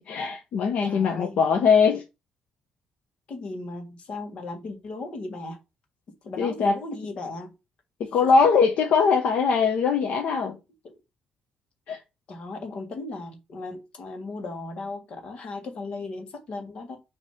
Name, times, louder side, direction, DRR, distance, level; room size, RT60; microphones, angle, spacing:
voice 1, 0.0-2.0 6.4-6.8 8.0-10.6 11.9-12.0, left 5 dB, 65° left, 1.0 m, -21 dB
voice 2, 0.8-1.4 3.3-5.6 6.2-7.5 10.1-10.5 12.3-17.0, left 3 dB, 45° left, 1.7 m, -36 dB
6.3 x 3.2 x 5.8 m
cardioid pair, 170°, 3 cm